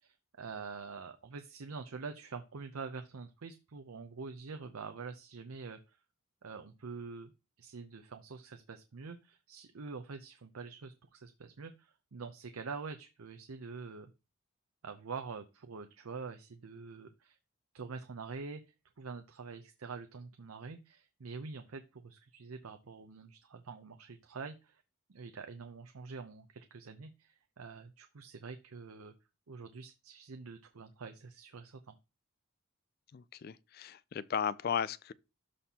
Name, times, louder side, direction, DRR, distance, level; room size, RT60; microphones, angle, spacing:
voice 1, 0.0-6.0 6.4-7.3 7.6-14.1 14.8-17.4 17.7-18.6 19.0-24.8 25.1-29.1 29.5-32.0, right 4 dB, 90° right, 0.6 m, -46 dB
voice 2, 33.1-35.1, left 7 dB, 45° left, 0.3 m, -35 dB
12.5 x 4.2 x 2.8 m
head